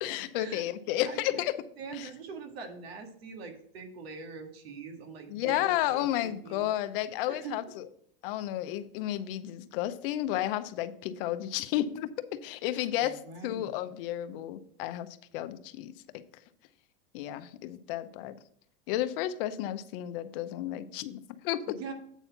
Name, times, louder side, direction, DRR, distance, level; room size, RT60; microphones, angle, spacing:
voice 1, 0.0-1.6 1.9-2.1 5.3-7.9 8.2-15.1 15.3-15.9 17.1-18.3 18.9-21.8, left 13 dB, 65° left, 11 dB, 0.7 m, -32 dB
voice 2, 1.0-1.5 1.8-6.7 7.3-7.7 12.7-13.7 21.7-21.9, right 5 dB, 85° right, 4 dB, 1.7 m, -43 dB
8.1 x 4.2 x 5.8 m, 0.65 s
supercardioid pair, 125°, 30 cm